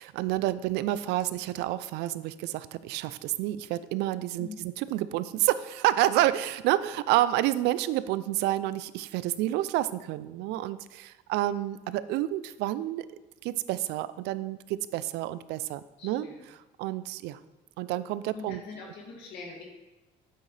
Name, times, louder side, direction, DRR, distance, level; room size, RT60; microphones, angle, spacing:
voice 1, 0.0-13.1 13.4-17.4 17.8-18.6, right 14 dB, 90° right, 16 dB, 0.4 m, -29 dB
voice 2, 16.0-16.5 18.3-19.6, left 4 dB, 85° left, -1 dB, 2.2 m, -43 dB
9.3 x 8.0 x 3.3 m, 1.1 s
cardioid pair, 110°, 17 cm